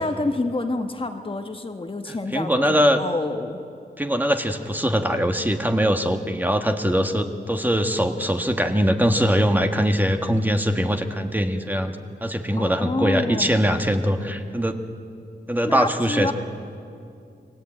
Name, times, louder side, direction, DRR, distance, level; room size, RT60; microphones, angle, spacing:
voice 1, 0.0-3.6 12.6-13.7 15.6-16.3, left 2 dB, 30° left, 6 dB, 1.3 m, -28 dB
voice 2, 2.3-3.0 4.0-12.0 12.2-14.8 15.5-16.3, equal, 10° right, 5 dB, 1.5 m, -22 dB
29.5 x 22.5 x 8.9 m, 2.5 s
wide cardioid pair, 120°, 18 cm